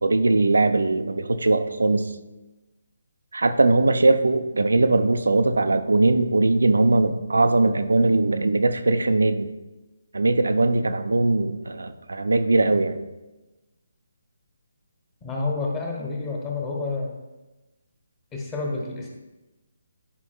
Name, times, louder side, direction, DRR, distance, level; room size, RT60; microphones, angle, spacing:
voice 1, 0.0-2.1 3.3-9.5 10.1-13.0, right 2 dB, 65° right, 9 dB, 0.5 m, -20 dB
voice 2, 15.2-17.2 18.3-19.1, left 3 dB, 15° left, -1 dB, 1.2 m, -29 dB
11.5 x 5.2 x 2.3 m, 1.1 s
figure-of-eight pair, 145°, 0 cm